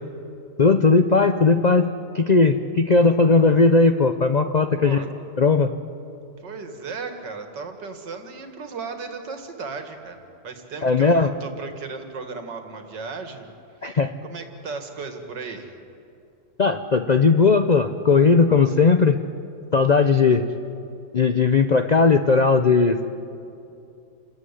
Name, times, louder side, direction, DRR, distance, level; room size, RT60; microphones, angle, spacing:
voice 1, 0.6-5.0 5.4-5.7 10.8-11.3 13.8-14.1 16.6-19.2 19.7-20.5 21.1-23.1, left 4 dB, 75° left, 8 dB, 0.3 m, -18 dB
voice 2, 4.8-5.1 6.4-13.5 13.8-13.9 14.2-15.7 20.2-20.4, right 4 dB, 85° right, 6 dB, 2.5 m, -36 dB
28.0 x 14.0 x 9.8 m, 2.6 s
omnidirectional pair, 1.8 m